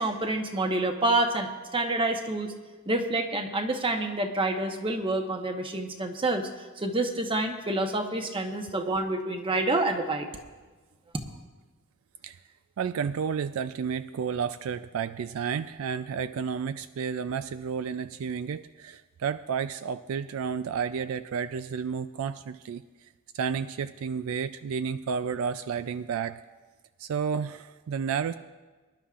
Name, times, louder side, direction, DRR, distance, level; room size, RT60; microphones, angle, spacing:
voice 1, 0.0-2.5 2.9-6.5 6.8-10.3, right 2 dB, 25° right, 5 dB, 1.0 m, -28 dB
voice 2, 12.8-23.1 23.3-26.4 27.0-28.3, right 6 dB, 70° right, 12 dB, 0.3 m, -31 dB
24.0 x 11.5 x 2.5 m, 1.3 s
head